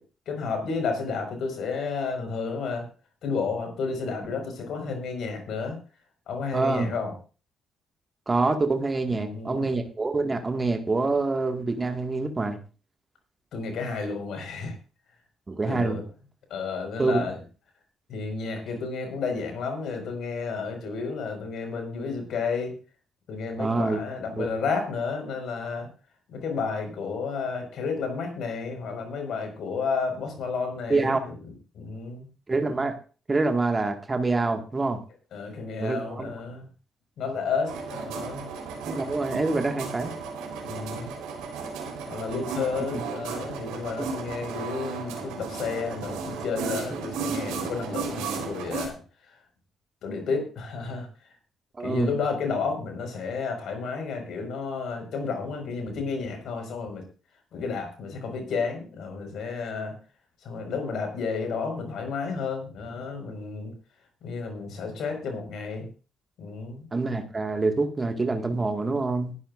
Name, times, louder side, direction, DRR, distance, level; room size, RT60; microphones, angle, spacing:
voice 1, 0.3-2.9 3.2-5.8 6.3-7.1 9.1-9.7 13.5-14.7 15.7-16.0 16.5-17.4 18.1-22.7 23.3-25.9 26.3-31.3 31.7-32.3 35.3-36.7 37.2-38.5 40.6-41.1 42.1-49.0 50.0-51.1 51.8-57.0 57.5-59.9 60.4-63.7 64.2-65.9 66.4-66.9, left 4 dB, 60° left, 4 dB, 5.1 m, -31 dB
voice 2, 6.5-6.9 8.3-12.6 15.5-16.0 17.0-17.3 23.6-24.0 24.4-24.5 30.9-31.2 32.5-32.9 33.3-35.0 35.8-36.3 38.9-40.1 42.9-43.0 46.9-47.0 51.8-52.1 66.9-69.3, right 3 dB, 25° right, 5 dB, 1.9 m, -26 dB
vinyl cutter machine plotter, 37.7-48.9, right 5 dB, 70° right, 3.9 m, -34 dB
21.5 x 11.5 x 2.6 m, 0.36 s
figure-of-eight pair, 45°, 0 cm